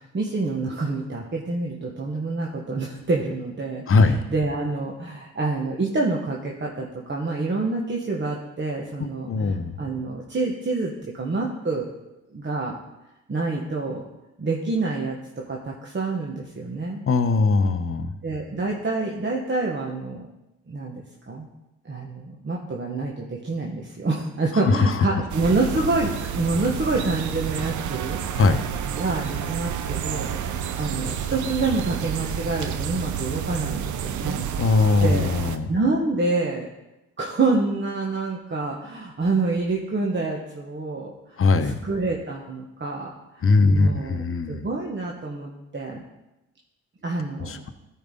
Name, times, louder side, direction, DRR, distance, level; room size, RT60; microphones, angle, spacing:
voice 1, 0.1-10.9 11.2-11.9 12.3-12.8 13.3-14.0 14.4-17.0 18.2-20.3 20.7-21.5 21.8-28.2 28.7-34.5 34.7-35.3 35.7-36.7 37.2-41.1 41.6-46.0 47.0-47.6, right 3 dB, 35° right, -1 dB, 1.4 m, -27 dB
voice 2, 3.9-4.2 9.0-9.7 17.1-18.1 24.8-24.9 28.4-28.6 34.6-35.7 41.4-41.8 43.4-44.7 47.5-47.7, left 3 dB, 45° left, 9 dB, 0.9 m, -20 dB
sound 1, 25.3-35.6, right 8 dB, 70° right, 0.7 m, -30 dB
13.5 x 4.8 x 3.9 m, 0.94 s
hypercardioid pair, 50°, 31 cm